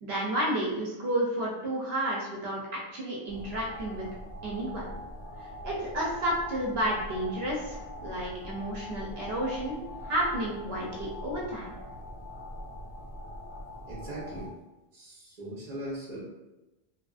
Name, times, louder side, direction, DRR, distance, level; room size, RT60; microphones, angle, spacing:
voice 1, 0.0-4.1 4.4-4.9 5.4-11.7, right 1 dB, 75° right, -4 dB, 0.9 m, -31 dB
sound 1, 3.3-14.5, left 1 dB, 55° left, 1.4 m, -42 dB
voice 2, 13.8-14.5 14.9-16.2, right 1 dB, 40° right, -6 dB, 1.0 m, -39 dB
3.2 x 2.4 x 2.4 m, 1.0 s
omnidirectional pair, 1.1 m